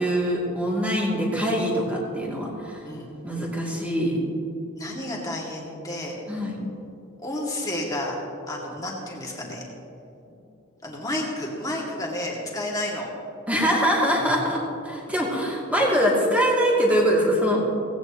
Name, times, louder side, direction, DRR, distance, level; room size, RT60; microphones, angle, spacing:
voice 1, 0.0-2.8 3.2-4.2 6.3-6.6 13.5-17.6, equal, 5° right, -4 dB, 2.7 m, -23 dB
voice 2, 4.8-6.2 7.2-8.2 8.5-9.6 10.3-10.4 10.8-13.1, left 1 dB, 15° left, -3 dB, 2.3 m, -31 dB
18.0 x 16.0 x 3.1 m, 2.8 s
head